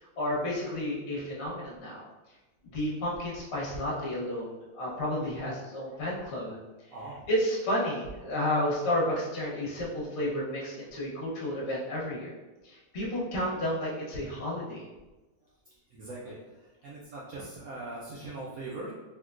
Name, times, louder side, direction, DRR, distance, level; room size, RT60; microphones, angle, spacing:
voice 1, 0.2-2.1 2.6-6.6 7.3-12.3 12.6-14.9, left 1 dB, 50° left, -6 dB, 0.9 m, -31 dB
voice 2, 15.9-16.4 16.8-18.9, right 2 dB, 80° right, -5 dB, 0.8 m, -40 dB
3.6 x 2.6 x 2.4 m, 1.1 s
omnidirectional pair, 2.0 m